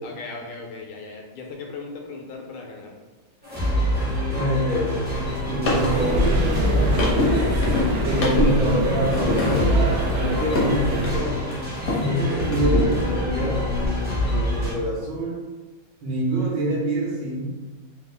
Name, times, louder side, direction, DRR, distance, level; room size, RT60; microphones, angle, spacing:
voice 1, 0.0-2.9 12.2-12.5, left 3 dB, 80° left, 1 dB, 1.5 m, -38 dB
sound 1, 3.4-14.7, equal, 15° right, 0.3 m, -26 dB
voice 2, 4.3-5.0 5.5-6.9 8.1-11.3 11.9-13.7 14.2-15.4 16.0-17.6, equal, 65° right, -7 dB, 1.8 m, -26 dB
sound 2, 5.0-12.1 12.4-13.9, left 2 dB, 55° left, 0.8 m, -27 dB
sound 3, 5.6-11.2, right 1 dB, 80° right, 0.8 m, -25 dB
4.1 x 2.4 x 3.3 m, 1.2 s
omnidirectional pair, 2.3 m